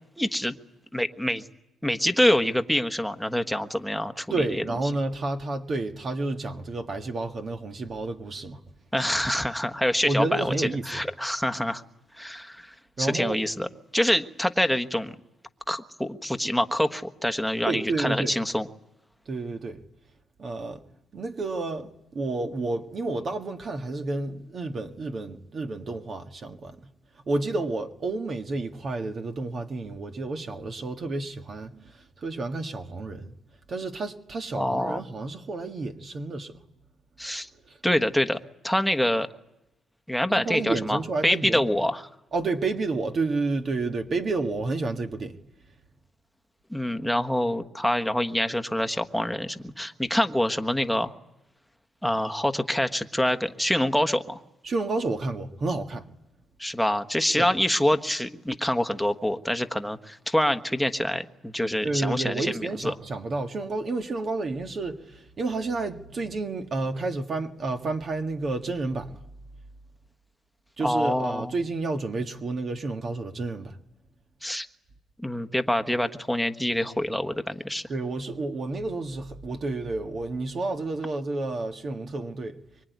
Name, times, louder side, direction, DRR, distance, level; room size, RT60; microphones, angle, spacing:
voice 1, 0.2-0.5 0.9-1.4 1.8-4.6 8.9-11.8 12.2-15.1 15.7-18.7 34.6-35.0 37.2-37.5 37.8-39.3 40.1-42.1 46.7-51.1 52.0-54.4 56.6-62.9 70.8-71.5 74.4-74.7 75.2-77.8, left 1 dB, ahead, 1.4 m, -26 dB
voice 2, 4.3-8.6 10.1-11.1 13.0-13.4 17.7-18.3 19.3-19.8 20.4-20.8 21.1-26.8 27.3-33.3 33.7-36.5 37.7-37.8 40.3-41.6 42.3-45.4 54.6-56.1 57.4-57.5 61.8-69.1 70.8-73.8 77.9-82.6, right 3 dB, 45° right, 1.8 m, -30 dB
24.5 x 23.5 x 9.5 m
cardioid pair, 90°, 0 cm